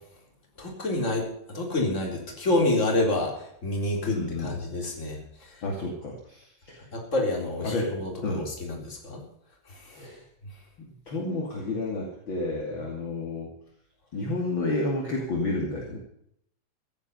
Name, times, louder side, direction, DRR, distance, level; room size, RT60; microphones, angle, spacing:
voice 1, 0.6-5.6 6.9-9.2 9.7-10.0, left 2 dB, 15° left, 0 dB, 3.4 m, -28 dB
voice 2, 4.1-4.5 5.6-6.8 7.6-7.9 8.2-8.5 9.9-10.2 11.1-13.5 14.1-16.0, left 2 dB, 35° left, -1 dB, 2.4 m, -30 dB
15.5 x 11.5 x 5.5 m, 0.71 s
omnidirectional pair, 5.4 m